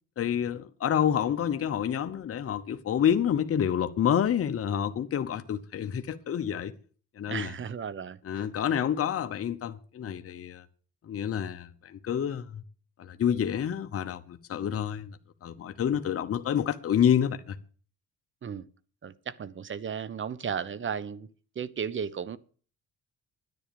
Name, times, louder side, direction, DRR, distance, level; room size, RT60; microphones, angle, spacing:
voice 1, 0.2-6.7 7.2-7.5 8.2-10.6 11.0-12.6 13.0-17.6, left 9 dB, 50° left, 1.0 m, -28 dB
voice 2, 7.3-8.5 18.4-18.6 19.0-21.3 21.5-22.4, right 7 dB, 40° right, 0.9 m, -35 dB
10.0 x 10.0 x 7.0 m
cardioid pair, 90°, 30 cm